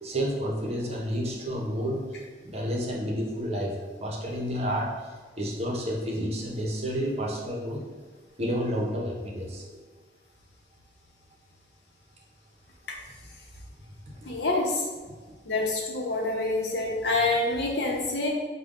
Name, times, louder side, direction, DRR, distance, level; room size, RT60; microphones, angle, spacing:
voice 1, 0.0-5.1 5.4-7.8 8.4-9.7 14.2-14.3, equal, 35° right, -2 dB, 0.7 m, -30 dB
voice 2, 14.2-14.8 15.5-18.3, left 2 dB, 70° left, -2 dB, 0.8 m, -26 dB
4.9 x 2.2 x 3.6 m, 1.4 s
head